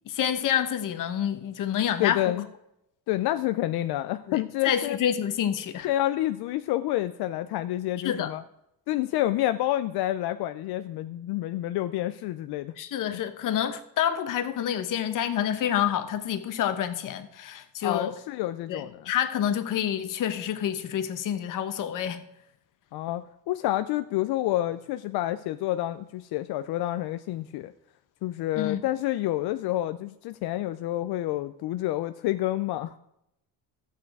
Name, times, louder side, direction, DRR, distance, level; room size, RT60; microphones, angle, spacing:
voice 1, 0.1-2.4 4.3-5.9 8.0-8.3 12.8-18.2 18.7-22.2 28.6-28.8, left 9 dB, 55° left, 1.0 m, -28 dB
voice 2, 2.0-2.5 3.1-5.0 5.8-8.4 8.9-12.7 13.1-13.2 17.8-19.1 22.9-27.7 28.2-33.0, left 14 dB, 80° left, 0.6 m, -28 dB
13.0 x 8.5 x 4.7 m
cardioid pair, 180°, 38 cm